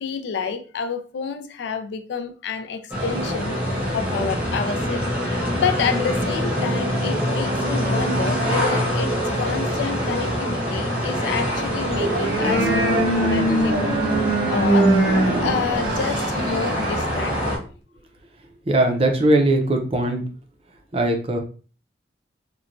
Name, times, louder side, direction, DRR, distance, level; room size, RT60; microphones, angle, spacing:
voice 1, 0.0-3.6 3.9-5.0 5.5-13.8 14.5-14.9 15.4-17.6, left 6 dB, 70° left, 0.3 m, -29 dB
sound 1, 2.9-17.6, equal, 10° right, 0.8 m, -25 dB
sound 2, 11.8-17.1, right 1 dB, 80° right, 0.7 m, -22 dB
voice 2, 18.7-20.2 20.9-21.4, right 1 dB, 30° right, 0.5 m, -19 dB
3.0 x 2.2 x 2.5 m
head